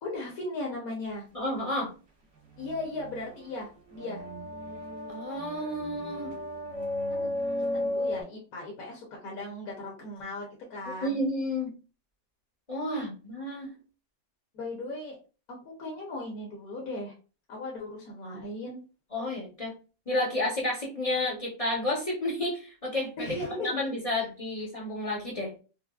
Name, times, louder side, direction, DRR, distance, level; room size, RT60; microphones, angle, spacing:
voice 1, 0.0-1.2 2.6-4.2 7.1-7.3 7.7-11.2 12.9-13.1 14.5-15.2 15.6-17.1 17.5-18.8 23.2-23.7, left 2 dB, 65° left, -2 dB, 1.2 m, -37 dB
voice 2, 1.3-1.9 5.1-6.3 11.0-11.7 12.7-13.7 19.1-19.7 20.1-25.5, left 1 dB, 35° left, -3 dB, 0.6 m, -31 dB
sound 1, 2.4-8.2, left 1 dB, 50° right, 0.9 m, -34 dB
4.7 x 2.0 x 2.3 m, 0.35 s
omnidirectional pair, 1.8 m